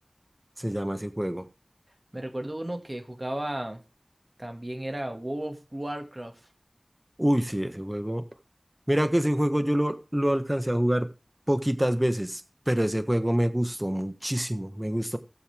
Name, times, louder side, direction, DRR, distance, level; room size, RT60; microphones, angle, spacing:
voice 1, 0.6-1.4 7.2-8.2 8.9-11.1 11.5-12.4 12.7-15.2, equal, 20° right, 1.4 m, -26 dB
voice 2, 2.1-3.8 4.4-6.3, right 1 dB, 45° right, 2.1 m, -34 dB
18.0 x 7.0 x 3.6 m
wide cardioid pair, 40°, 0 cm